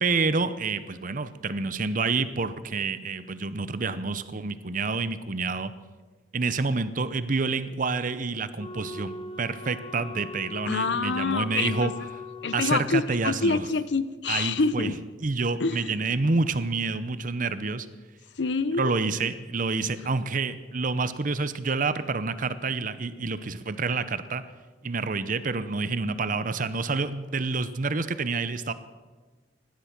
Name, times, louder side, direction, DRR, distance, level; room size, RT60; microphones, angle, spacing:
voice 1, 0.0-5.7 6.3-11.9 12.5-13.6 14.3-14.9 15.2-17.9 18.8-24.4 24.8-28.7, right 4 dB, 45° right, 13 dB, 0.8 m, -28 dB
Wind instrument woodwind instrument, 8.6-12.9, left 3 dB, 30° left, 0.8 m, -40 dB
voice 2, 10.7-11.9 12.4-15.0 15.6-15.9 18.4-18.9, left 4 dB, 75° left, 14 dB, 0.7 m, -26 dB
16.5 x 11.5 x 5.9 m, 1.3 s
head